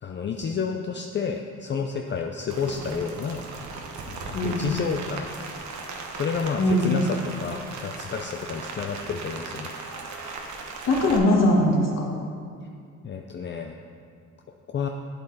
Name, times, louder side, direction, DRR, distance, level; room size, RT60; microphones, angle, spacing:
voice 1, 0.0-3.4 4.0-5.3 6.1-9.7 13.0-13.7 14.7-14.9, left 6 dB, 40° left, 3 dB, 0.5 m, -30 dB
Rain, 2.5-11.2, right 4 dB, 70° right, 1.1 m, -37 dB
voice 2, 4.3-4.7 6.6-6.9 10.9-12.1, left 1 dB, 60° left, -2 dB, 2.0 m, -21 dB
8.6 x 7.9 x 4.2 m, 2.2 s
cardioid pair, 90°, 30 cm